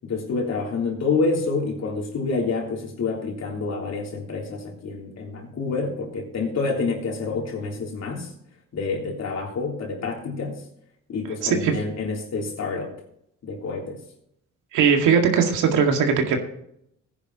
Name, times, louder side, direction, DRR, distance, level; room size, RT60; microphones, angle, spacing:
voice 1, 0.0-8.3 8.7-10.6 11.1-12.9 13.4-14.0, left 4 dB, 60° left, 0 dB, 3.4 m, -28 dB
voice 2, 11.4-11.7 14.7-16.4, right 6 dB, 85° right, 3 dB, 2.1 m, -19 dB
16.0 x 10.0 x 3.0 m, 0.74 s
cardioid pair, 90°, 30 cm